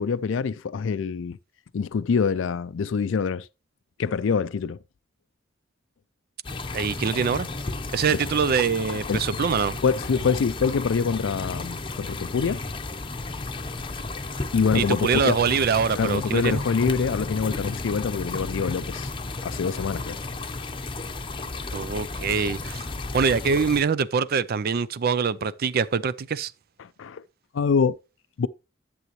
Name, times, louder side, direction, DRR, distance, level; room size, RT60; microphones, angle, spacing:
voice 1, 0.0-1.4 1.7-3.5 4.0-4.8 8.1-8.2 9.1-9.3 9.8-12.6 14.5-15.4 15.9-19.1 19.4-20.2 26.8-27.2 27.5-28.0 28.4-28.5, left 5 dB, 70° left, 0.4 m, -25 dB
small spring stream in the woods - front, 6.4-23.8, left 3 dB, 25° left, 0.8 m, -33 dB
voice 2, 6.7-7.5 7.9-9.8 14.7-16.6 21.7-22.8 23.1-26.5, right 6 dB, 50° right, 0.4 m, -24 dB
11.0 x 7.1 x 3.1 m
head